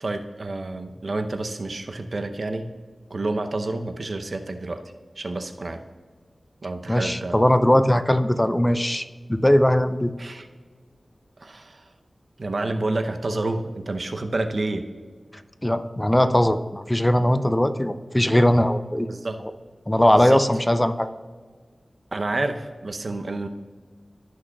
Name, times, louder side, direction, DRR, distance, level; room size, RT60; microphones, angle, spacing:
voice 1, 0.0-2.7 3.1-4.8 5.2-5.8 6.6-7.4 10.2-10.5 11.4-11.8 12.4-14.8 19.1-19.4 20.1-20.4 22.1-23.5, right 2 dB, 70° right, 7 dB, 0.7 m, -29 dB
voice 2, 6.9-10.1 15.6-19.1 19.9-21.1, left 1 dB, 15° left, 10 dB, 0.5 m, -20 dB
16.5 x 6.2 x 2.3 m, 1.5 s
cardioid pair, 45°, 0 cm